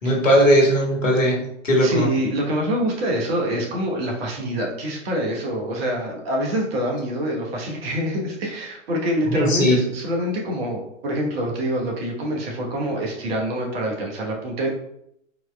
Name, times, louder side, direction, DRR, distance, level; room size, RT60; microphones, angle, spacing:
voice 1, 0.0-2.1 9.3-9.9, equal, 75° left, -1 dB, 1.2 m, -18 dB
voice 2, 1.8-14.7, equal, 50° right, -1 dB, 1.1 m, -26 dB
4.1 x 2.9 x 2.2 m, 0.76 s
figure-of-eight pair, 110°, 38 cm